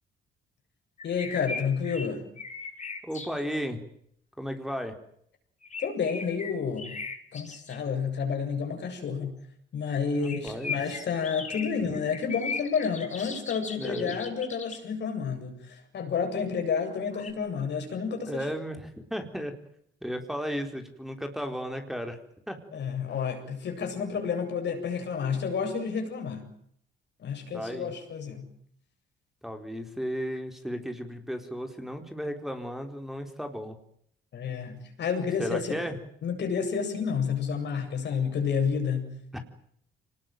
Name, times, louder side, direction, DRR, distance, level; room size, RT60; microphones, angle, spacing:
voice 1, 1.0-2.2 5.8-6.9 7.3-9.4 9.7-18.4 22.7-26.5 27.2-28.5 34.3-35.8 36.2-39.1, left 6 dB, 60° left, 5 dB, 8.0 m, -30 dB
sound 1, 1.0-3.6 5.6-7.8 10.2-14.8 16.9-17.3, left 4 dB, 35° left, 4.9 m, -38 dB
voice 2, 3.0-3.9 4.4-4.9 10.2-10.7 11.8-11.9 13.8-14.2 18.3-19.5 20.0-22.2 22.5-22.6 27.5-27.9 29.4-33.8 35.4-36.0 39.3-39.4, equal, ahead, 5 dB, 4.4 m, -34 dB
25.5 x 20.0 x 9.3 m, 0.69 s
cardioid pair, 90°, 20 cm